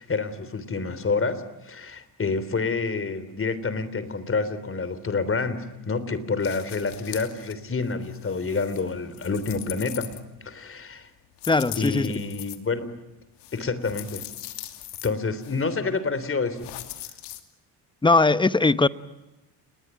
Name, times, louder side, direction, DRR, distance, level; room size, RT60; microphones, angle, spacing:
voice 1, 0.0-10.1 10.4-11.1 11.8-13.0 13.5-14.2 15.0-16.7, left 4 dB, 30° left, 3.5 m, -28 dB
sound 1, 6.4-7.5 7.9-10.6 11.4-12.6 13.4-15.1 15.4-15.6 16.6-17.4, left 13 dB, 85° left, 2.7 m, -40 dB
voice 2, 11.5-12.1 18.0-18.9, left 3 dB, 10° left, 0.9 m, -20 dB
29.5 x 21.0 x 9.1 m
cardioid pair, 100°, 40 cm